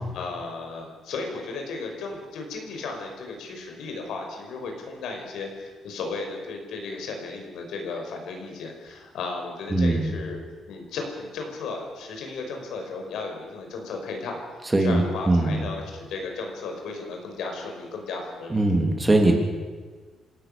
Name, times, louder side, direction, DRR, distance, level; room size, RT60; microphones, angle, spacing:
voice 1, 0.0-10.4 10.7-18.7, left 3 dB, 80° left, 3 dB, 5.4 m, -35 dB
voice 2, 9.7-10.1 14.7-15.6 18.5-19.3, right 2 dB, 15° right, 3 dB, 3.0 m, -21 dB
27.5 x 17.0 x 6.9 m, 1.4 s
cardioid pair, 145°, 0 cm